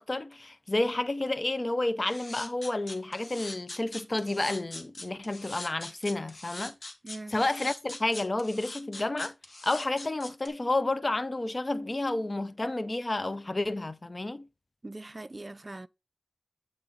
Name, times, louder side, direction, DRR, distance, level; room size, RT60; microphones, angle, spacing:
voice 1, 0.0-6.8 7.3-9.3 9.6-14.5, left 2 dB, 40° left, 0.5 m, -30 dB
sound 1, 2.1-10.5, left 2 dB, 75° left, 1.3 m, -42 dB
voice 2, 7.0-7.4 14.8-15.9, right 2 dB, 40° right, 0.3 m, -41 dB
8.4 x 3.8 x 4.1 m
wide cardioid pair, 55°, 0 cm